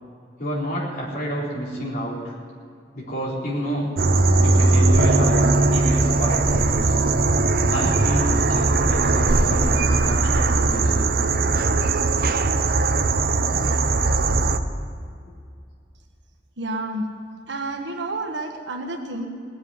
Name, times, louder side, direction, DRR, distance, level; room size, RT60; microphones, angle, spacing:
voice 1, 0.4-2.3 2.9-3.9 4.4-5.4 5.7-7.0 7.7-11.0, equal, 50° left, -6 dB, 4.1 m, -29 dB
sound 1, 4.0-14.6, right 3 dB, 60° right, 0.8 m, -19 dB
voice 2, 16.6-17.1 17.5-19.3, right 2 dB, 85° right, 3 dB, 1.6 m, -29 dB
18.5 x 7.9 x 9.5 m, 2.3 s
head